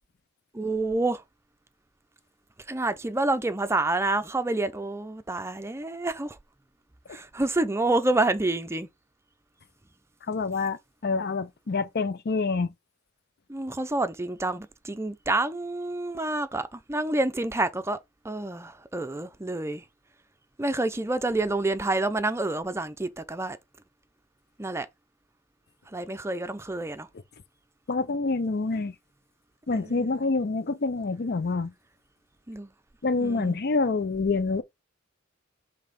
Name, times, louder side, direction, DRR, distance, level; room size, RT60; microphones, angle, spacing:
voice 1, 0.5-1.2 2.7-6.4 7.1-8.9 13.5-18.0 18.2-19.8 20.6-23.6 24.6-24.9 25.9-27.1 29.8-30.1 32.5-32.7 33.2-33.6, right 2 dB, 15° right, 0.5 m, -28 dB
voice 2, 10.3-10.8 11.0-12.7 27.9-28.9 29.7-31.7 33.0-34.6, left 3 dB, 50° left, 0.6 m, -27 dB
5.4 x 3.4 x 5.2 m
head